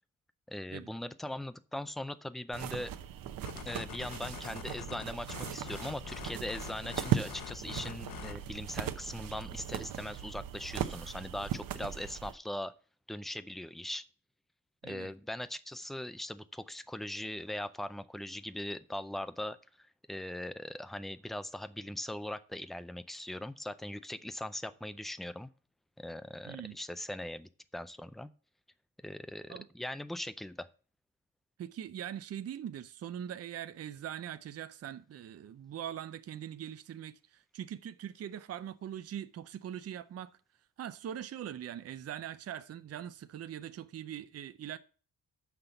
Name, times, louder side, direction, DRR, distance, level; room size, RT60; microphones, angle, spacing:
voice 1, 0.5-2.9 3.6-12.7 13.1-14.0 14.8-25.5 26.0-28.3 29.0-30.7, left 1 dB, ahead, 0.4 m, -40 dB
sound 1, 2.5-12.3, right 9 dB, 90° right, 0.8 m, -38 dB
sound 2, 3.4-8.5, left 10 dB, 80° left, 0.7 m, -46 dB
voice 2, 26.4-26.8 29.5-29.7 31.6-40.3 40.8-44.8, right 10 dB, 50° right, 0.5 m, -42 dB
6.7 x 5.9 x 6.9 m
wide cardioid pair, 140°, 33 cm